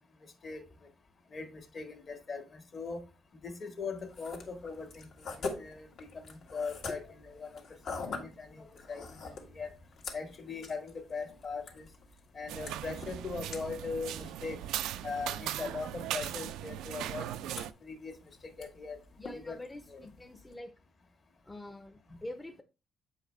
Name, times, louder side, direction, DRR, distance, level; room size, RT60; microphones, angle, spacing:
voice 1, 0.2-0.6 1.3-3.1 3.4-7.6 7.9-9.7 10.1-11.9 12.3-14.6 15.0-17.3 17.8-18.1 18.4-19.0 19.3-19.6 19.9-20.0, left 4 dB, 50° left, 1.7 m, -40 dB
sound 1, 4.0-20.6, left 3 dB, 70° left, 1.6 m, -46 dB
sound 2, 12.5-17.7, right 12 dB, 90° right, 0.3 m, -38 dB
voice 2, 19.2-20.7 21.4-22.6, left 1 dB, 20° left, 0.6 m, -45 dB
7.8 x 4.9 x 3.2 m
cardioid pair, 90°, 0 cm